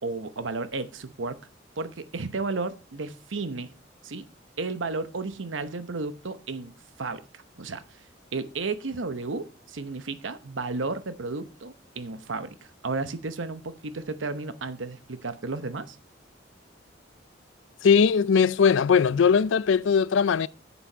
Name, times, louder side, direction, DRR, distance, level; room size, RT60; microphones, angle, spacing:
voice 1, 0.0-1.4 1.8-3.7 4.0-4.3 4.6-6.7 7.0-7.8 8.3-16.0, right 3 dB, 80° right, 0.9 m, -33 dB
voice 2, 17.8-20.5, left 6 dB, 75° left, 0.4 m, -20 dB
8.8 x 7.1 x 4.5 m
head